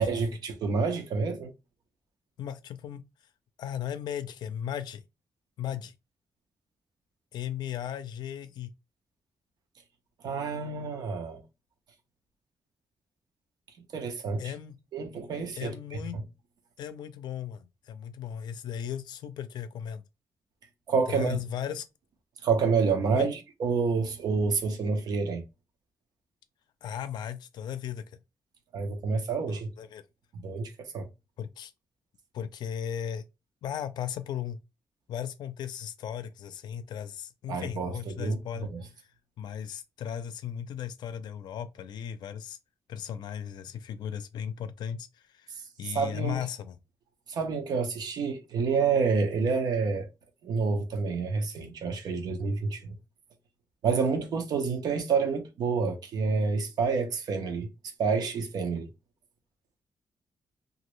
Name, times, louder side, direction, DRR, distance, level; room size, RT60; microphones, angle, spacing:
voice 1, 0.0-1.5 10.2-11.4 13.9-14.5 14.9-15.7 16.1-16.2 20.9-21.4 22.4-25.4 28.7-29.7 30.3-31.1 37.5-38.8 45.8-46.4 47.3-50.1 50.4-52.9 53.8-57.7 58.0-58.9, right 5 dB, 70° right, 0.8 m, -28 dB
voice 2, 2.4-3.0 3.6-5.0 5.6-5.9 7.3-8.7 14.4-14.8 15.5-16.2 16.8-20.0 21.1-21.8 23.1-23.3 26.8-28.0 29.5-30.0 31.4-31.7 32.3-33.2 33.6-34.6 35.1-38.7 39.4-42.6 42.9-45.5 45.8-46.8, left 9 dB, 85° left, 0.4 m, -36 dB
3.0 x 2.4 x 3.1 m
wide cardioid pair, 180°, 7 cm